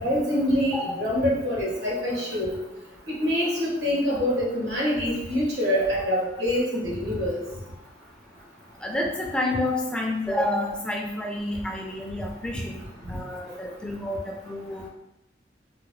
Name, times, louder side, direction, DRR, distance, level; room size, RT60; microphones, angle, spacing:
voice 1, 0.0-2.5 3.2-7.4, equal, 85° right, -5 dB, 1.3 m, -25 dB
voice 2, 8.8-12.8 13.1-14.9, left 1 dB, 5° left, 0 dB, 0.3 m, -29 dB
3.8 x 2.2 x 3.0 m, 0.92 s
head